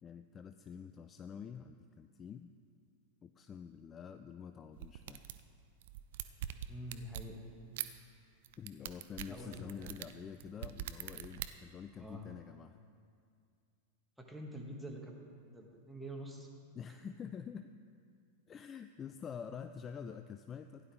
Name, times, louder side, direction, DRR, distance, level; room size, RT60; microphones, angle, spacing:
voice 1, 0.0-2.5 3.2-5.2 8.6-12.8 16.7-17.7 18.5-20.9, left 7 dB, 25° left, 9 dB, 0.3 m, -47 dB
sound 1, 4.8-5.4 5.8-7.3 7.8-7.9 8.4-11.5, right 12 dB, 55° right, 0.4 m, -42 dB
voice 2, 6.7-7.4 9.3-9.9 12.0-12.2 14.2-15.2 15.5-16.5 16.9-17.0, equal, 5° right, 0 dB, 1.5 m, -46 dB
15.5 x 10.5 x 3.2 m, 2.3 s
figure-of-eight pair, 90°, 0 cm